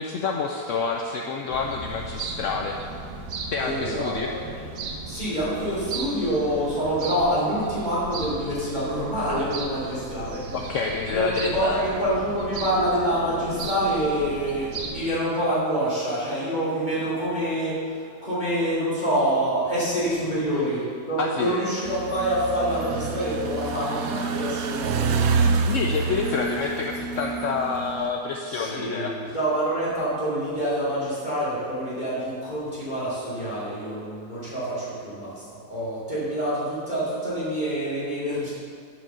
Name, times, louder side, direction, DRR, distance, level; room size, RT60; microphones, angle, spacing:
voice 1, 0.0-2.8 3.5-4.4 10.5-11.9 20.5-20.6 21.2-21.6 25.7-29.2, left 5 dB, 65° left, 2 dB, 0.9 m, -28 dB
sound 1, 1.5-15.1, right 3 dB, 90° right, 1.5 m, -36 dB
voice 2, 3.6-4.5 5.0-10.4 11.1-25.3 28.5-38.5, right 1 dB, 30° left, -10 dB, 3.1 m, -26 dB
sound 2, 21.8-28.1, right 5 dB, 70° right, 1.1 m, -27 dB
9.7 x 5.3 x 6.9 m, 2.3 s
omnidirectional pair, 1.6 m